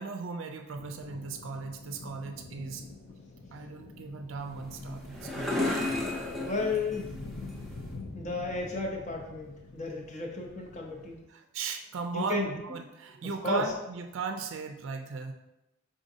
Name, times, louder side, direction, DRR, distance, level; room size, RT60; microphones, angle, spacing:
voice 1, 0.0-2.8 3.5-5.6 11.3-15.3, right 4 dB, 65° right, 5 dB, 0.4 m, -37 dB
sound 1, 0.7-11.2, left 2 dB, 80° left, 0.6 m, -46 dB
sound 2, 4.4-8.0, left 2 dB, ahead, 0.6 m, -34 dB
voice 2, 6.4-7.1 8.1-11.2 12.1-12.5 13.4-13.6, left 3 dB, 35° left, 1 dB, 0.7 m, -33 dB
5.0 x 3.7 x 2.7 m, 0.93 s
head